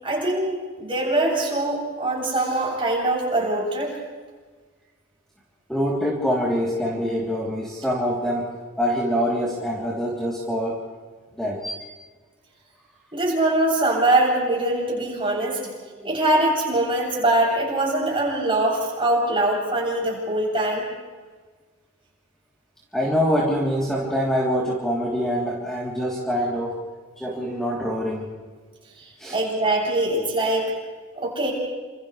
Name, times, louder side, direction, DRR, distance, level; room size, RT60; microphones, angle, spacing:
voice 1, 0.0-3.9 13.1-15.6 16.0-20.9 29.3-30.7 31.2-31.5, right 1 dB, 25° right, -4 dB, 7.9 m, -22 dB
voice 2, 5.7-8.5 8.8-10.8 11.4-11.9 16.0-16.1 22.9-26.8 27.2-28.2 29.2-29.4, equal, ahead, -6 dB, 3.5 m, -25 dB
29.5 x 27.5 x 3.4 m, 1.4 s
head